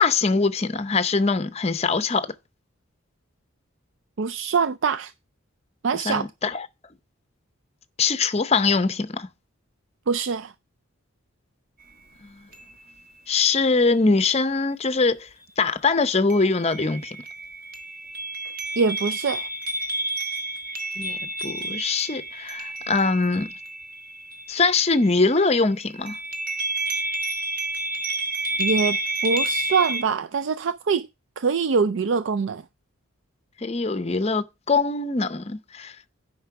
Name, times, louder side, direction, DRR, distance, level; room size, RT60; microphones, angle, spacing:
voice 1, 0.0-2.3 6.1-6.7 8.0-9.3 13.3-15.3 15.6-17.2 21.0-23.5 24.5-26.2 33.6-35.9, left 4 dB, 30° left, 0.6 m, -22 dB
voice 2, 4.2-5.1 5.8-6.3 10.1-10.5 18.8-19.5 28.6-29.0 29.2-31.1 31.4-32.6, right 5 dB, 60° right, 0.4 m, -24 dB
sound 1, 11.8-11.9 12.5-13.1 16.3-25.4 25.8-30.0, right 2 dB, 45° right, 1.3 m, -30 dB
9.3 x 5.3 x 5.9 m
head